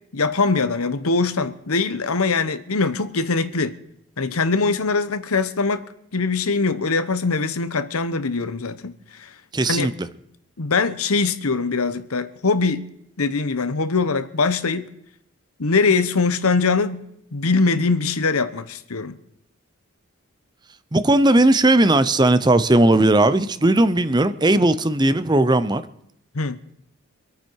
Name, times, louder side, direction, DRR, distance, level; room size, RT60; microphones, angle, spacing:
voice 1, 0.1-3.8 4.2-5.8 6.1-9.3 9.6-9.9 10.6-12.9 13.2-14.9 15.6-19.2 26.3-26.6, left 4 dB, 85° left, 1.0 m, -22 dB
voice 2, 9.5-9.9 20.9-25.8, right 2 dB, 20° right, 0.6 m, -17 dB
25.5 x 9.0 x 4.7 m
head